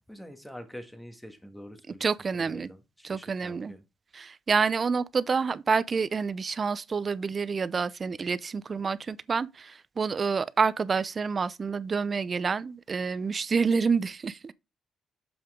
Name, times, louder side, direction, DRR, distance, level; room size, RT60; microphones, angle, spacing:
voice 1, 0.0-2.1 2.3-3.8, equal, 5° left, 1.7 m, -45 dB
voice 2, 2.0-2.7 3.0-3.7 4.1-14.5, right 5 dB, 40° right, 0.5 m, -28 dB
7.3 x 5.8 x 3.6 m
cardioid pair, 90°, 0 cm